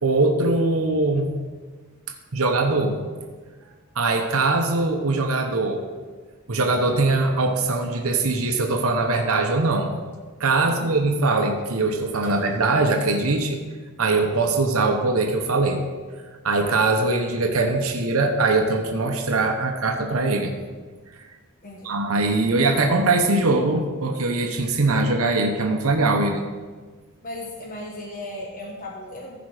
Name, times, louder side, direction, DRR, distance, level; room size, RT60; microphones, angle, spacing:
voice 1, 0.0-1.3 2.3-3.0 4.0-5.8 6.5-9.9 10.4-13.6 14.0-15.8 16.4-20.5 21.8-26.4, right 3 dB, 75° right, 3 dB, 0.9 m, -21 dB
voice 2, 10.6-11.0 12.2-12.4 21.6-22.0 27.2-29.4, left 1 dB, 40° left, -2 dB, 1.2 m, -36 dB
15.0 x 5.1 x 4.9 m, 1.4 s
head